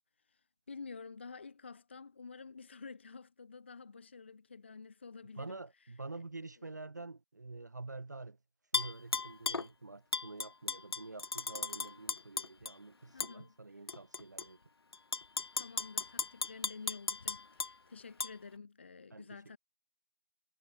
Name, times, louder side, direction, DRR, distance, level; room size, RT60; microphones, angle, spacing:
voice 1, 0.3-6.7 13.1-13.9 15.5-19.6, left 4 dB, 20° left, 1.1 m, -50 dB
voice 2, 5.4-8.4 8.7-14.6 19.1-19.6, right 3 dB, 35° right, 0.6 m, -47 dB
Tap / Glass, 8.7-9.7 10.1-12.7 13.2-13.3 13.9-14.4 14.9-17.7 18.2-18.3, left 4 dB, 55° left, 0.4 m, -36 dB
figure-of-eight pair, 175°, 16 cm